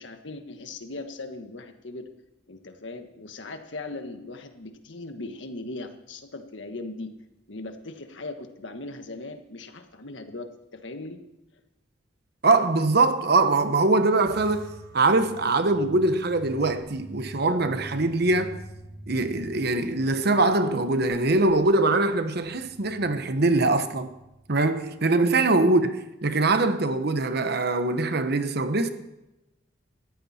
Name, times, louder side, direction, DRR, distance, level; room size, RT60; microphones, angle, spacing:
voice 1, 0.0-2.1 2.5-7.1 7.5-11.2, left 2 dB, 75° left, 1.6 m, -39 dB
voice 2, 12.4-18.6 19.1-24.1 24.5-25.9 26.2-28.9, right 2 dB, 60° right, 1.1 m, -22 dB
sound 1, 14.3-24.9, right 1 dB, 85° right, 6.4 m, -46 dB
19.5 x 14.0 x 4.4 m
head